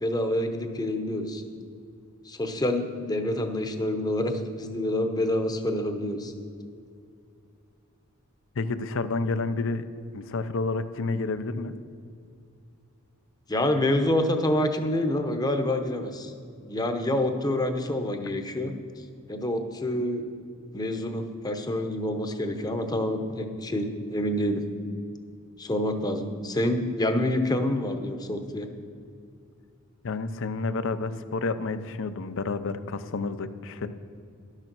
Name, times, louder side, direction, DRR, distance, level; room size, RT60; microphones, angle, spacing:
voice 1, 0.0-1.4 2.3-6.3 13.5-16.3 16.6-18.7 19.3-20.3 20.7-24.6 25.6-28.7, left 1 dB, 20° left, 6 dB, 0.8 m, -27 dB
voice 2, 8.6-9.8 10.1-11.7 30.0-33.9, left 3 dB, 65° left, 12 dB, 0.6 m, -30 dB
12.0 x 6.6 x 6.1 m, 2.4 s
head